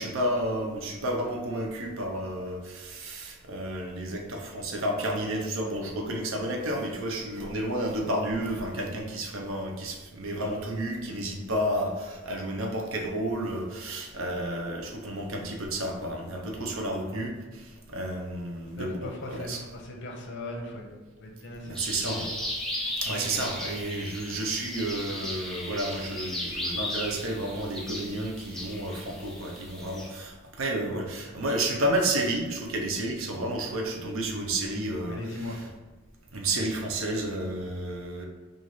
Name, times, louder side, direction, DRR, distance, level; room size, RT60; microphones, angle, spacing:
voice 1, 0.0-19.6 21.7-22.3 23.0-35.6 36.3-38.2, right 1 dB, 70° right, 1 dB, 0.6 m, -31 dB
voice 2, 18.8-20.9 21.2-21.8 22.0-22.3 23.1-23.5 35.1-35.6, left 1 dB, 55° left, 1 dB, 0.7 m, -38 dB
sound 1, 21.7-30.1, left 1 dB, ahead, 0.4 m, -36 dB
3.1 x 2.5 x 4.0 m, 1.3 s
head